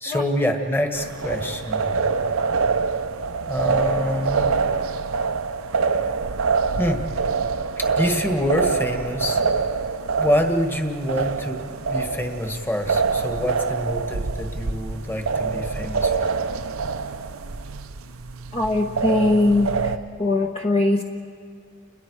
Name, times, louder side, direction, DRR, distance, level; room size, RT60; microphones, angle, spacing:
voice 1, 0.0-1.9 3.5-4.5 6.8-7.1 7.8-9.4 10.2-16.3, equal, 10° left, 4 dB, 1.6 m, -26 dB
sound 1, 0.9-20.0, right 5 dB, 85° right, 0.8 m, -25 dB
voice 2, 18.5-19.9 20.2-21.0, left 2 dB, 30° left, 1 dB, 1.0 m, -21 dB
30.0 x 21.0 x 4.8 m, 2.1 s
head